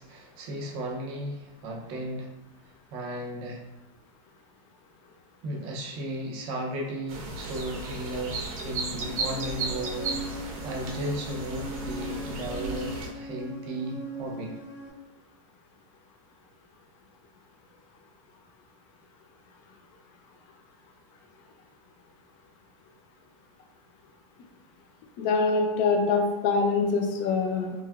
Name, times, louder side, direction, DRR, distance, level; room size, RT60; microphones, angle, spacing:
voice 1, 0.0-2.3 2.9-3.6 5.4-14.5, right 1 dB, 30° right, 1 dB, 0.4 m, -35 dB
sound 1, 7.1-13.1, right 3 dB, 75° right, 0.6 m, -35 dB
sound 2, 9.0-14.9, right 2 dB, 70° left, 0.7 m, -40 dB
voice 2, 25.2-27.7, left 4 dB, 35° left, 2 dB, 0.4 m, -24 dB
2.9 x 2.5 x 2.3 m, 1.1 s
supercardioid pair, 160°, 18 cm